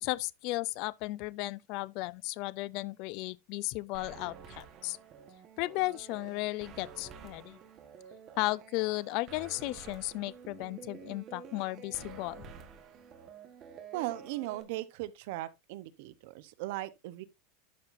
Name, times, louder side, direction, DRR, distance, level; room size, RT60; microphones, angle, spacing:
voice 1, 0.0-5.0 5.6-7.6 8.4-12.4, left 20 dB, 40° left, 0.3 m, -35 dB
sound 1, 3.9-14.6, right 6 dB, 25° right, 1.3 m, -50 dB
voice 2, 13.9-17.2, right 16 dB, 55° right, 0.8 m, -38 dB
12.0 x 5.7 x 2.5 m
supercardioid pair, 175°, 0 cm